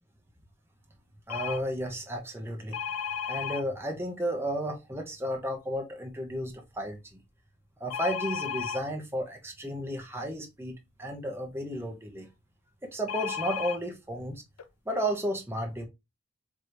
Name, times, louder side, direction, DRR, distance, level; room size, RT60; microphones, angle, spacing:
sound 1, 1.3-1.6 2.7-3.6 7.9-8.8 13.1-13.8 14.6-14.7 14.9-15.1, left 7 dB, 85° left, 0.6 m, -33 dB
voice 1, 1.3-2.8 3.3-7.0 7.8-12.3 12.8-14.4 14.9-15.9, equal, 10° right, 0.8 m, -33 dB
4.7 x 3.0 x 2.6 m
head